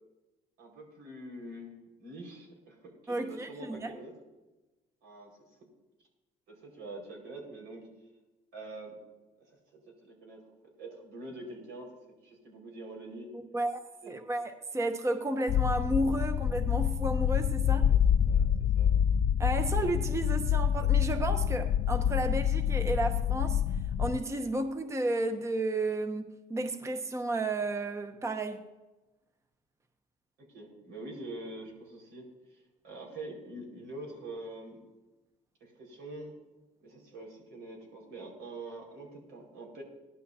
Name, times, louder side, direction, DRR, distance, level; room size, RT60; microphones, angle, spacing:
voice 1, 0.6-1.7 2.0-4.1 5.0-5.3 6.5-7.8 8.5-9.0 9.4-9.6 9.9-10.4 10.8-12.0 12.2-13.3 14.0-14.2 17.8-18.0 18.3-18.4 18.8-18.9 30.4-34.8 35.6-36.4 36.8-39.8, right 2 dB, 85° right, 5.1 m, -45 dB
voice 2, 3.1-3.9 13.3-17.9 19.4-23.6 24.0-28.6, right 2 dB, 15° right, 0.8 m, -32 dB
sound 1, 15.5-24.2, left 9 dB, 50° left, 0.4 m, -27 dB
18.0 x 12.0 x 2.8 m
cardioid pair, 110°, 17 cm